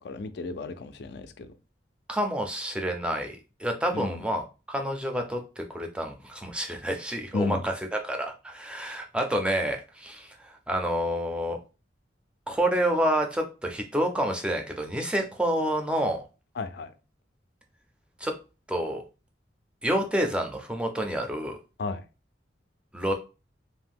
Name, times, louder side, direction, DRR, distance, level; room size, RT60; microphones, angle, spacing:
voice 1, 0.0-1.5 3.9-4.2 7.3-7.6 16.6-16.9 21.8-22.0, left 3 dB, 65° left, 0.4 m, -33 dB
voice 2, 2.1-11.6 12.5-16.2 18.2-18.3 18.7-19.0 19.8-21.6 22.9-23.1, right 1 dB, 5° right, 0.4 m, -28 dB
2.5 x 2.1 x 3.5 m
head